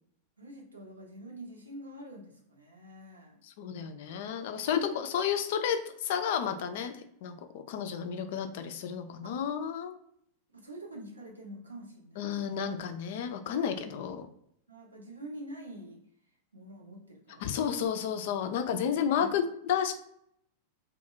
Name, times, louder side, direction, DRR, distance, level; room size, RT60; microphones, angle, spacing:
voice 1, 0.4-3.4 9.2-9.4 10.5-12.7 14.7-16.0 16.5-17.9 18.9-19.3, right 1 dB, 80° right, -1 dB, 0.7 m, -46 dB
voice 2, 3.4-9.9 12.2-14.3 17.4-19.9, left 8 dB, 55° left, 8 dB, 0.3 m, -32 dB
2.2 x 2.1 x 3.7 m, 0.71 s
figure-of-eight pair, 90°, 0 cm